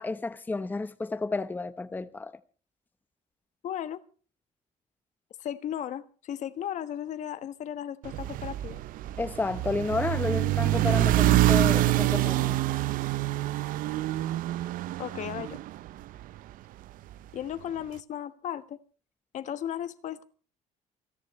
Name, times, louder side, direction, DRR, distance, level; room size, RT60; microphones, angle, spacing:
voice 1, 0.0-2.4 9.2-12.8, left 3 dB, 15° left, 0.9 m, -31 dB
voice 2, 3.6-4.0 5.4-8.8 15.0-15.6 17.3-18.8 19.3-20.2, left 10 dB, 60° left, 1.3 m, -35 dB
sound 1, 8.0-16.4, right 15 dB, 85° right, 0.7 m, -26 dB
28.5 x 11.0 x 3.1 m
cardioid pair, 150°, 14 cm